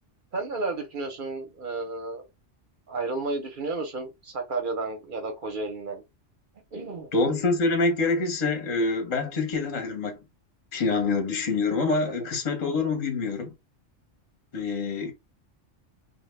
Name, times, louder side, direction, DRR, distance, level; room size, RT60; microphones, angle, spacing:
voice 1, 0.3-2.2 2.9-6.0 6.7-7.1, right 3 dB, 50° right, 0.7 m, -32 dB
voice 2, 7.1-10.2 10.7-13.5 14.5-15.1, left 3 dB, 40° left, 0.7 m, -26 dB
2.1 x 2.0 x 3.1 m
omnidirectional pair, 1.3 m